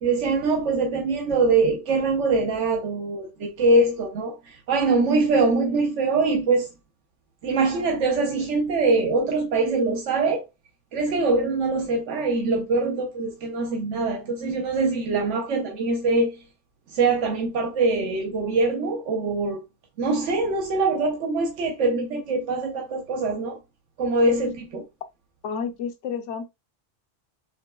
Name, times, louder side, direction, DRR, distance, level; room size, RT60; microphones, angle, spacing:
voice 1, 0.0-6.7 7.4-10.4 10.9-16.4 16.9-19.6 20.0-23.6 24.0-24.8, right 3 dB, 90° right, 1.1 m, -23 dB
voice 2, 25.4-26.5, left 6 dB, 80° left, 1.0 m, -30 dB
6.8 x 2.9 x 2.3 m
omnidirectional pair, 1.2 m